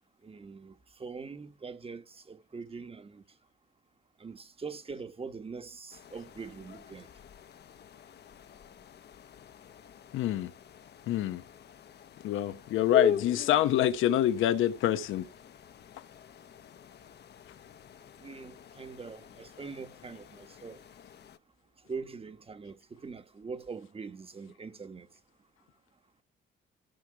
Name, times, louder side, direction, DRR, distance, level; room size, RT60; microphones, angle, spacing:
voice 1, 0.2-3.2 4.2-7.1 18.2-20.8 21.9-25.1, right 5 dB, 30° right, 1.3 m, -43 dB
sound 1, 5.9-21.4, left 6 dB, 55° left, 0.9 m, -41 dB
voice 2, 10.1-10.5 11.1-11.4 12.2-15.3, left 12 dB, 85° left, 1.0 m, -26 dB
15.0 x 6.1 x 4.7 m
cardioid pair, 90°, 20 cm